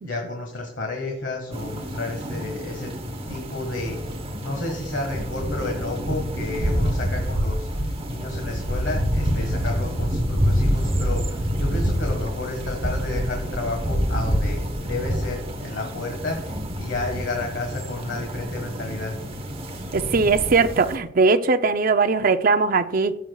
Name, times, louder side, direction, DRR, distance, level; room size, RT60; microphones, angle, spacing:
voice 1, 0.0-2.9 3.3-4.2 4.4-19.2, left 2 dB, 70° left, 1.6 m, -31 dB
sound 1, 1.5-21.0, equal, 30° right, 1.0 m, -27 dB
voice 2, 19.9-23.2, right 4 dB, 50° right, 0.5 m, -20 dB
16.0 x 7.2 x 2.3 m
head